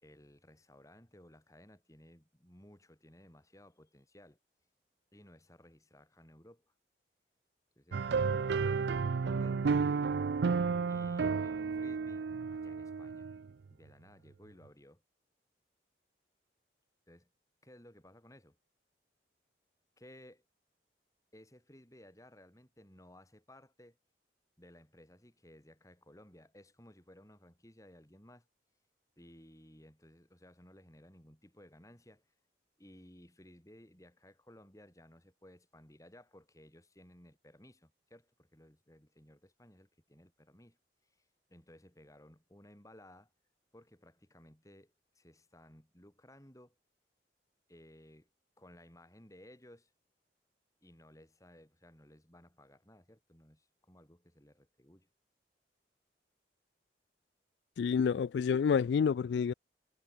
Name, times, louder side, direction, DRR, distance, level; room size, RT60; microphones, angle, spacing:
voice 1, 0.0-4.4 5.1-6.7 7.7-9.7 10.9-13.3 13.7-15.0 17.1-17.3 17.6-18.6 20.0-20.4 21.3-24.0 24.6-28.4 29.2-32.3 32.8-40.8 41.5-43.3 43.7-46.8 47.7-48.3 48.6-49.9 50.8-55.1, left 1 dB, 20° left, 5.1 m, -58 dB
sound 1, 7.9-13.5, right 5 dB, 70° right, 0.4 m, -32 dB
voice 2, 57.8-59.5, left 6 dB, 70° left, 0.3 m, -28 dB
head